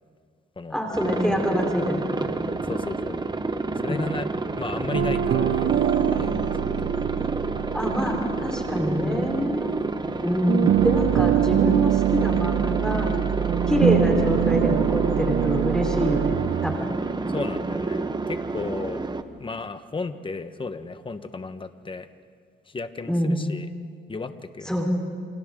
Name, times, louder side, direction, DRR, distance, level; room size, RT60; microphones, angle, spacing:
voice 1, 0.7-2.4 3.9-4.0 7.7-9.7 10.2-13.1 13.7-16.4 16.6-16.8 23.1-23.4 24.7-24.9, equal, 5° left, 0 dB, 4.5 m, -25 dB
Aircraft, 0.9-19.2, right 3 dB, 20° right, 1.1 m, -29 dB
voice 2, 2.6-3.3 3.8-4.3 4.6-6.9 17.3-19.0 19.4-22.1 22.7-23.7 24.1-24.8, left 3 dB, 25° left, 10 dB, 1.4 m, -34 dB
sound 1, 4.9-10.2 10.5-16.8, right 10 dB, 65° right, 0.8 m, -24 dB
28.5 x 27.5 x 3.9 m, 2.1 s
cardioid pair, 90°, 20 cm